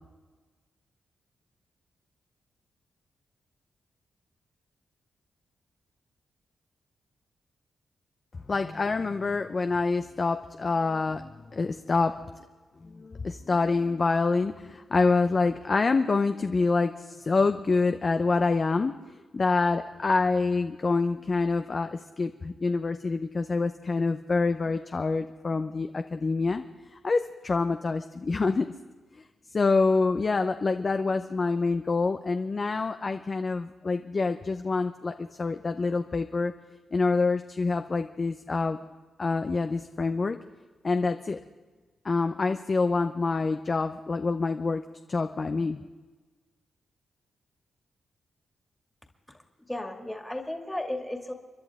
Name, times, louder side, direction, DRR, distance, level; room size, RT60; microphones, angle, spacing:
voice 1, 8.5-12.1 12.8-18.9 19.3-26.6 27.0-28.7 29.5-36.5 36.9-38.8 39.2-40.4 40.8-41.4 42.0-44.8 45.1-45.8, left 3 dB, 40° left, 8 dB, 0.6 m, -26 dB
voice 2, 49.7-51.3, left 1 dB, 10° left, 3 dB, 2.1 m, -34 dB
30.0 x 11.0 x 3.6 m, 1.3 s
cardioid pair, 70°, 0 cm